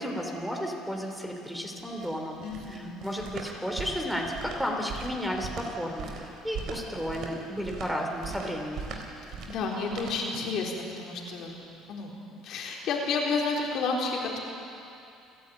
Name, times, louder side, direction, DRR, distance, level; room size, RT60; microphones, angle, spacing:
voice 1, 0.0-2.4 2.7-8.9, equal, ahead, 1 dB, 3.2 m, -33 dB
sound 1, 1.8-10.7, right 4 dB, 60° right, 3.7 m, -40 dB
voice 2, 2.4-3.0 9.5-11.6 11.9-12.1 12.4-14.4, left 4 dB, 60° left, -1 dB, 3.9 m, -31 dB
29.0 x 11.0 x 9.0 m, 2.7 s
supercardioid pair, 95°, 0 cm